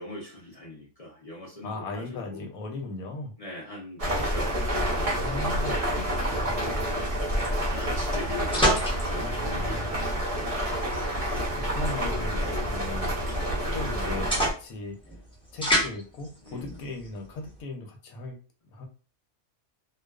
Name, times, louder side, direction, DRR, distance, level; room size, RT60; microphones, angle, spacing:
voice 1, 0.0-2.4 3.4-4.6 5.0-5.6 7.7-10.6 12.3-12.6 16.4-16.6, left 1 dB, 55° left, -4 dB, 0.4 m, -41 dB
voice 2, 1.6-3.3 5.2-7.0 7.4-7.6 9.1-9.9 11.5-13.1 13.6-15.0 15.5-18.4 18.7-18.9, left 2 dB, 85° left, 4 dB, 1.1 m, -38 dB
sound 1, 4.0-14.5, equal, 40° right, 0.5 m, -28 dB
sound 2, 6.8-17.6, equal, 5° left, 0.6 m, -33 dB
2.4 x 2.3 x 2.3 m, 0.35 s
omnidirectional pair, 1.5 m